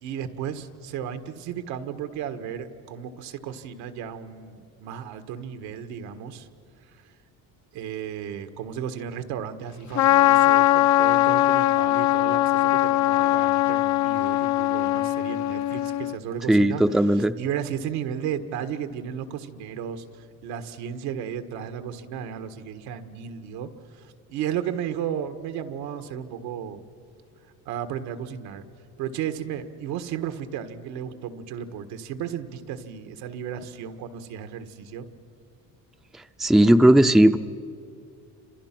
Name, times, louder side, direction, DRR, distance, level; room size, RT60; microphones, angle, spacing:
voice 1, 0.0-6.5 6.9-7.1 7.7-16.8 17.1-26.8 27.6-28.6 29.0-35.1, right 8 dB, 90° right, 8 dB, 1.6 m, -34 dB
Trumpet, 9.9-16.2, left 16 dB, 50° left, 0.6 m, -21 dB
voice 2, 16.5-17.3 36.4-37.4, right 1 dB, ahead, 9 dB, 0.5 m, -17 dB
30.0 x 27.0 x 6.0 m, 2.4 s
cardioid pair, 120°, 37 cm